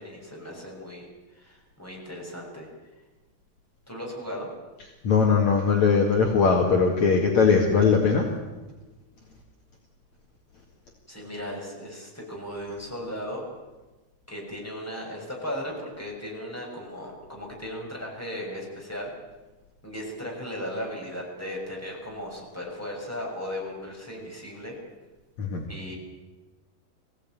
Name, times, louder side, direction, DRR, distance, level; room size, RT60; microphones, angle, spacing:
voice 1, 0.0-2.7 3.9-4.5 11.1-13.4 14.3-19.1 19.8-24.8 25.7-25.9, equal, 5° left, -2 dB, 6.1 m, -36 dB
voice 2, 5.0-8.3 25.4-25.7, left 5 dB, 55° left, 0 dB, 3.2 m, -20 dB
23.0 x 16.5 x 9.1 m, 1.2 s
omnidirectional pair, 4.2 m